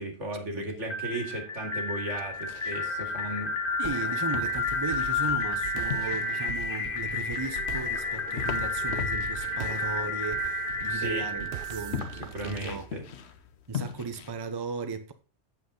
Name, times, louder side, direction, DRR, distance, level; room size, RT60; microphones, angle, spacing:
voice 1, 0.0-3.5 10.9-11.5 12.1-13.0, right 1 dB, 75° right, 2.7 m, -36 dB
sound 1, 0.9-12.7, left 2 dB, 45° left, 1.3 m, -31 dB
sound 2, 2.1-14.3, left 8 dB, 65° left, 1.0 m, -42 dB
voice 2, 3.8-11.4 11.7-12.9 13.7-15.1, right 4 dB, 25° right, 0.7 m, -36 dB
sound 3, 3.8-13.3, right 11 dB, 55° right, 0.8 m, -43 dB
8.3 x 7.5 x 3.9 m
omnidirectional pair, 1.3 m